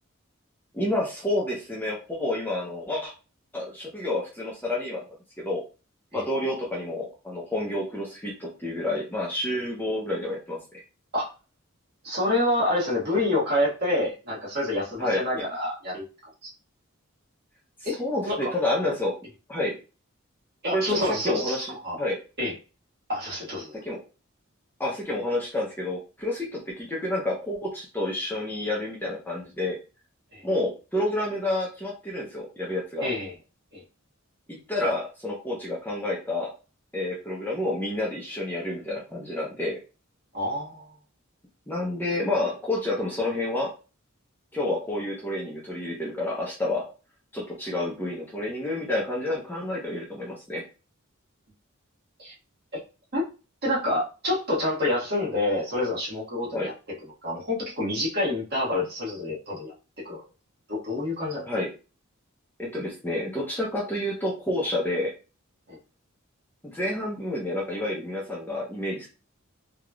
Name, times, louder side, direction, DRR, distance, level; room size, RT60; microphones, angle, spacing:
voice 1, 0.7-3.1 3.5-5.0 5.4-5.6 6.1-10.6 15.0-15.2 18.0-19.1 19.5-19.7 20.7-21.7 22.0-22.2 23.8-24.0 24.8-29.8 30.4-33.1 34.7-36.5 36.9-39.8 41.7-43.7 44.5-46.8 47.3-50.6 56.5-56.7 61.4-61.7 62.6-65.1 66.6-69.1, left 1 dB, 10° left, -3 dB, 0.7 m, -29 dB
voice 2, 12.0-16.0 16.4-16.5 17.8-18.5 20.6-22.0 22.4-22.5 23.1-23.8 30.3-30.4 33.0-33.3 33.7-33.8 40.3-40.9 52.2-52.3 53.1-53.3 53.6-56.7 57.2-60.2 60.7-61.5 65.7-65.8, left 1 dB, 50° right, -5 dB, 1.6 m, -27 dB
3.4 x 2.9 x 2.4 m, 0.32 s
head